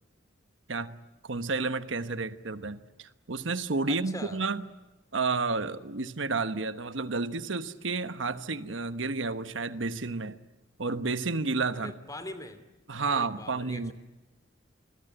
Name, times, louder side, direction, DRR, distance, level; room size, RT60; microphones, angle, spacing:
voice 1, 1.2-4.6 5.1-10.4 10.8-11.9 12.9-13.9, right 3 dB, 80° right, 1.2 m, -31 dB
voice 2, 3.9-4.4 11.7-12.6 13.1-13.9, left 1 dB, 20° left, 2.7 m, -42 dB
29.0 x 21.0 x 9.1 m
head